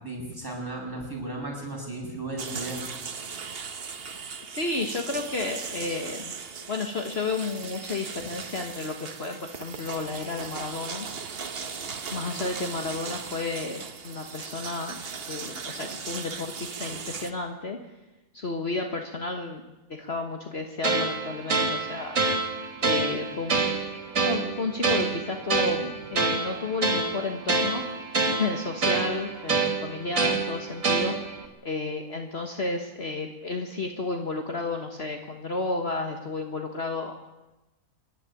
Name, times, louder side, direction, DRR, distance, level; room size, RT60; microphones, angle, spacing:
voice 1, 0.0-2.8, right 2 dB, 15° right, -2 dB, 6.8 m, -35 dB
sound 1, 2.4-17.3, right 5 dB, 45° right, 1.3 m, -38 dB
voice 2, 4.5-6.3 6.7-11.1 12.1-15.0 15.3-17.8 18.3-19.6 19.9-22.2 22.8-23.7 24.2-27.9 28.4-37.2, left 3 dB, 45° left, 3 dB, 1.7 m, -32 dB
sound 2, 20.8-31.5, right 3 dB, 65° right, 3.0 m, -27 dB
25.5 x 11.5 x 9.9 m, 1.0 s
omnidirectional pair, 1.5 m